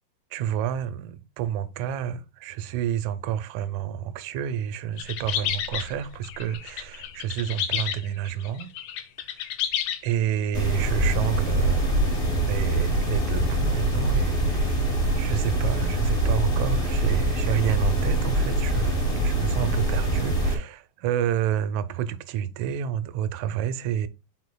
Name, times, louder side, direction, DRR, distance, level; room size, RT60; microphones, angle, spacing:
voice 1, 0.3-8.7 9.3-9.4 10.0-12.0 12.4-14.8 15.2-24.1, right 10 dB, 80° right, 1.7 m, -29 dB
sound 1, 5.0-10.1, left 10 dB, 75° left, 1.9 m, -31 dB
sound 2, 10.5-20.5, right 1 dB, 30° left, 1.1 m, -24 dB
11.0 x 4.0 x 2.2 m
omnidirectional pair, 4.0 m